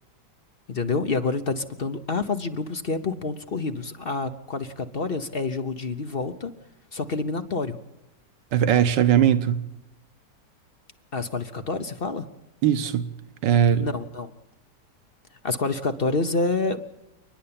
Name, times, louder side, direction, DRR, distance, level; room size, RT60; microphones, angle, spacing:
voice 1, 0.7-6.5 6.9-7.8 11.1-12.3 13.8-14.3 15.4-16.8, left 3 dB, 40° left, 0.9 m, -28 dB
voice 2, 8.5-9.6 12.6-13.1 13.4-13.8, right 9 dB, 90° right, 1.6 m, -20 dB
29.5 x 10.0 x 8.7 m
omnidirectional pair, 1.9 m